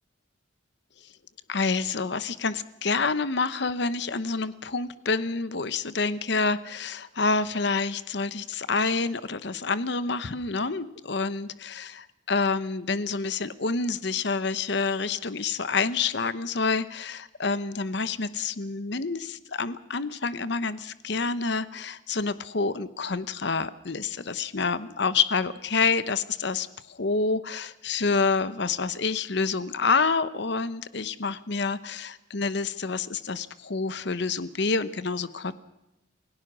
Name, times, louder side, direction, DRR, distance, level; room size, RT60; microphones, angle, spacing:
voice 1, 1.5-35.5, left 4 dB, 60° left, 14 dB, 0.9 m, -28 dB
28.0 x 17.0 x 6.2 m, 0.90 s
head